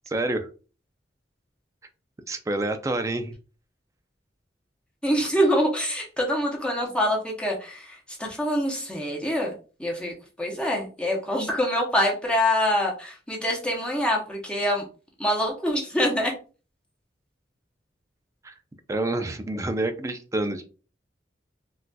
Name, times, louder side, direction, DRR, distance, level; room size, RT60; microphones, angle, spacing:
voice 1, 0.1-0.5 2.3-3.3 18.4-18.5 18.9-20.7, right 2 dB, 20° right, 8 dB, 0.3 m, -28 dB
voice 2, 5.0-9.5 9.8-14.8 15.2-16.3, equal, 5° left, -1 dB, 0.7 m, -25 dB
3.9 x 2.3 x 2.2 m, 0.35 s
head